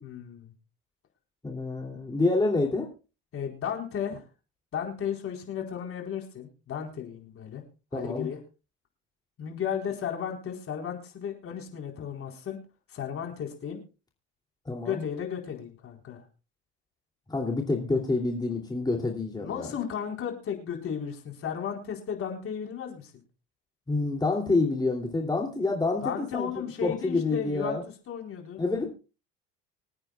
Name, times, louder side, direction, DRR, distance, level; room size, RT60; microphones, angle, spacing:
voice 1, 0.0-0.5 3.3-4.2 4.7-7.6 7.9-8.4 9.4-12.6 12.9-13.8 14.8-16.2 19.4-23.1 26.0-27.8 28.1-28.6, left 8 dB, 50° left, 2 dB, 4.3 m, -34 dB
voice 2, 1.4-2.9 7.9-8.3 14.6-15.0 17.3-19.7 23.9-26.5 26.8-27.8 28.6-28.9, left 3 dB, 15° left, 1 dB, 2.9 m, -27 dB
25.5 x 9.0 x 2.4 m, 0.32 s
supercardioid pair, 80°, 29 cm